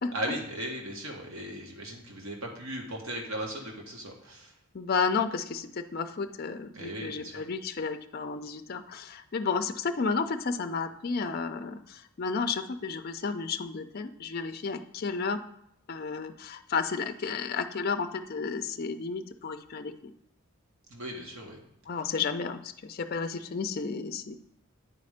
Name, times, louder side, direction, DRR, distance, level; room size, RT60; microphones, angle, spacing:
voice 1, 0.1-4.5 6.7-7.4 20.9-21.6, right 1 dB, 75° right, 1 dB, 1.4 m, -37 dB
voice 2, 4.7-15.4 15.9-20.1 21.9-24.4, left 5 dB, 45° left, 7 dB, 0.4 m, -32 dB
9.2 x 4.3 x 5.0 m, 0.77 s
head